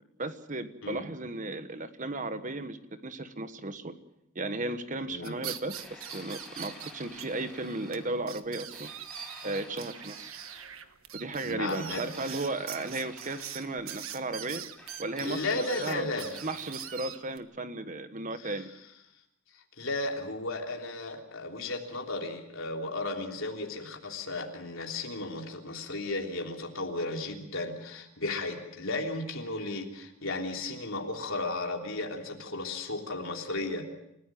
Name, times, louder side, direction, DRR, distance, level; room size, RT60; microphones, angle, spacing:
voice 1, 0.2-2.8 3.0-4.0 4.3-8.9 9.4-10.4 11.1-14.6 15.0-18.7, right 2 dB, 35° right, 10 dB, 1.3 m, -35 dB
sound 1, 5.2-7.3 7.5-7.6 7.9-8.0 8.3-17.4, right 10 dB, 75° right, 1.4 m, -42 dB
sound 2, 5.7-8.3 8.7-10.7 11.7-13.8 14.8-16.9, left 2 dB, 5° left, 5.6 m, -51 dB
voice 2, 11.4-12.1 15.2-16.4 18.4-18.5 19.5-33.8, left 2 dB, 70° left, 1 dB, 3.3 m, -34 dB
29.5 x 15.0 x 7.6 m, 0.83 s
head